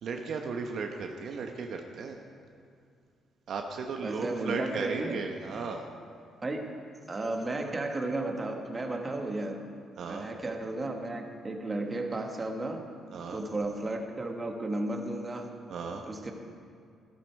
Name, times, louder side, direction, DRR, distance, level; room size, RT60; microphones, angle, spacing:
voice 1, 0.0-2.2 3.5-5.9 10.0-10.3 13.1-13.4 15.7-16.0, right 5 dB, 65° right, 3 dB, 0.9 m, -35 dB
voice 2, 4.0-5.2 6.4-6.7 7.1-9.6 10.1-12.8 13.3-15.5 16.1-16.3, right 2 dB, 25° right, 3 dB, 1.5 m, -33 dB
14.5 x 12.0 x 4.7 m, 2.4 s
cardioid pair, 90°, 0 cm